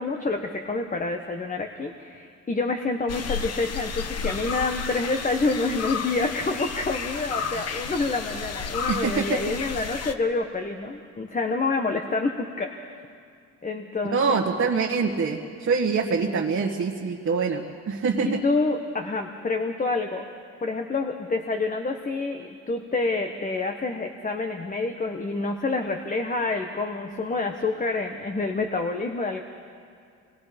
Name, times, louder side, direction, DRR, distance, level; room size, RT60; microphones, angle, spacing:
voice 1, 0.0-13.0 13.6-14.4 18.2-20.3 20.6-29.4, left 3 dB, 25° left, 5 dB, 1.3 m, -28 dB
sound 1, 3.1-10.1, left 6 dB, 55° left, 1.1 m, -32 dB
voice 2, 8.9-9.2 14.1-18.4, right 5 dB, 45° right, -2 dB, 1.8 m, -25 dB
26.0 x 21.0 x 5.2 m, 2.3 s
cardioid pair, 90°, 30 cm